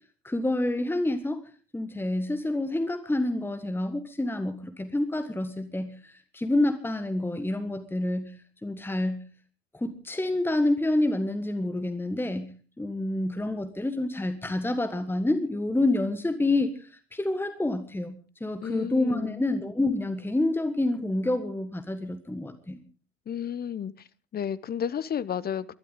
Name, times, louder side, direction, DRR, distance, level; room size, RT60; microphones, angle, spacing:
voice 1, 0.2-1.4 1.7-8.3 8.6-9.2 9.7-12.5 12.8-22.8, left 2 dB, 5° left, 9 dB, 1.5 m, -28 dB
voice 2, 18.6-19.4 23.3-23.9 24.3-25.7, left 8 dB, 30° left, 17 dB, 0.8 m, -32 dB
23.0 x 12.5 x 3.8 m, 0.37 s
figure-of-eight pair, 60°, 33 cm